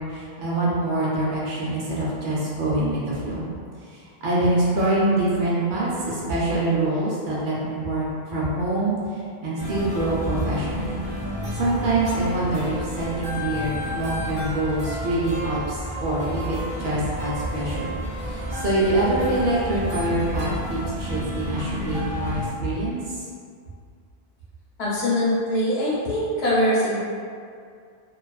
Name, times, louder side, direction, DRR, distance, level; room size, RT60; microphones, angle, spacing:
voice 1, 0.0-3.5 3.9-11.0 11.5-17.9 18.3-23.0, right 1 dB, 60° right, -7 dB, 0.7 m, -25 dB
sound 1, 9.6-22.5, equal, 10° right, 0.5 m, -31 dB
voice 2, 24.8-27.0, left 1 dB, 90° left, -8 dB, 1.0 m, -22 dB
2.4 x 2.3 x 2.3 m, 2.2 s
omnidirectional pair, 1.0 m